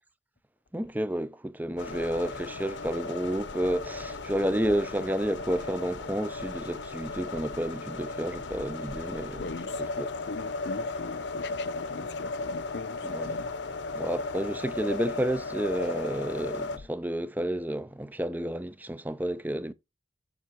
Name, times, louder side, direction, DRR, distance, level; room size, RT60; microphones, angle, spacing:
voice 1, 0.7-9.4 10.0-10.1 13.0-13.4 13.9-19.7, right 1 dB, 10° right, 0.5 m, -31 dB
sound 1, 1.8-16.8, left 3 dB, 90° left, 0.9 m, -36 dB
voice 2, 9.3-13.5, left 3 dB, 70° left, 0.7 m, -41 dB
7.6 x 5.7 x 4.7 m
head